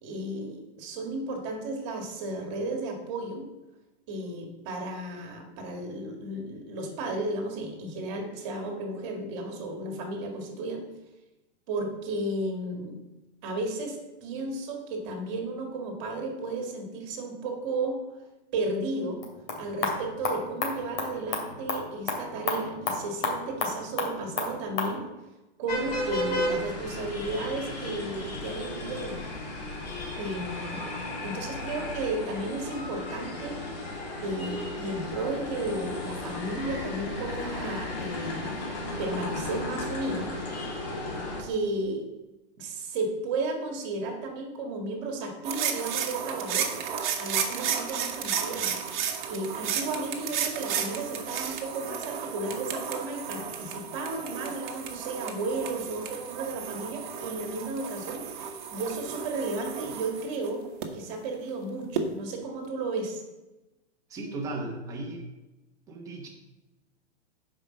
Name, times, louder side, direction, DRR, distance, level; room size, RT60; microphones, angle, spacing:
voice 1, 0.0-3.5 4.1-10.8 11.7-12.9 13.4-18.0 18.5-19.2 19.6-25.1 25.6-29.3 30.2-30.9 31.2-33.6 34.2-38.6 39.0-40.3 41.4-42.1 42.6-46.7 47.2-48.8 49.3-60.6 60.9-63.2, right 2 dB, 25° right, 3 dB, 1.8 m, -33 dB
sound 1, 19.1-25.0, left 3 dB, 55° left, 2.7 m, -33 dB
sound 2, 25.7-41.4, left 1 dB, 35° left, 2.4 m, -34 dB
sound 3, 45.4-60.9 62.0-62.1, right 7 dB, 45° right, 1.3 m, -33 dB
voice 2, 64.1-65.2 65.9-66.3, right 2 dB, 10° right, -1 dB, 1.1 m, -36 dB
9.9 x 5.2 x 6.4 m, 1.0 s
hypercardioid pair, 175°, 34 cm